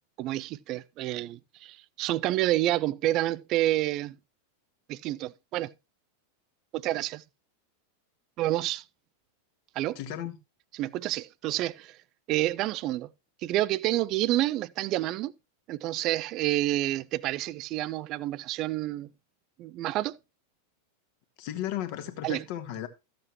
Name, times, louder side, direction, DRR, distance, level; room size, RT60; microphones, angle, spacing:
voice 1, 0.2-4.2 4.9-5.7 6.7-7.2 8.4-8.8 9.8-10.0 10.7-12.0 12.3-13.1 13.4-15.3 15.7-19.1 19.6-20.2 22.2-22.4, right 15 dB, 40° right, 0.5 m, -29 dB
voice 2, 10.0-10.4 21.4-22.9, left 11 dB, 45° left, 1.5 m, -35 dB
13.5 x 7.7 x 3.0 m
figure-of-eight pair, 90°, 0 cm